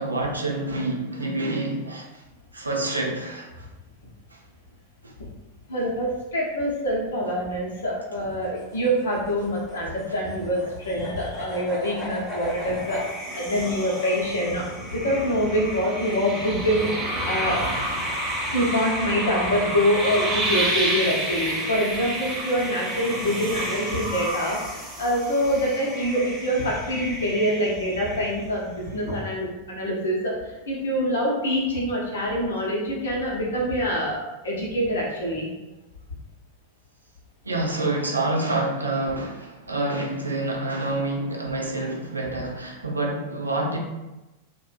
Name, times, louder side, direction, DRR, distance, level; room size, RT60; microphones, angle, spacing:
voice 1, 0.0-2.2 2.5-3.7 4.3-4.4 5.0-5.1 10.6-10.7 37.5-43.8, right 2 dB, 80° right, 0 dB, 0.4 m, -27 dB
voice 2, 5.7-13.0 13.3-16.9 17.2-17.8 18.5-35.5, equal, 65° left, -3 dB, 0.7 m, -25 dB
sound 1, 8.3-13.1, left 1 dB, 15° left, 0.8 m, -36 dB
sound 2, 12.4-28.6, right 1 dB, 20° right, 0.6 m, -30 dB
2.5 x 2.1 x 2.4 m, 1.0 s
figure-of-eight pair, 90°, 0 cm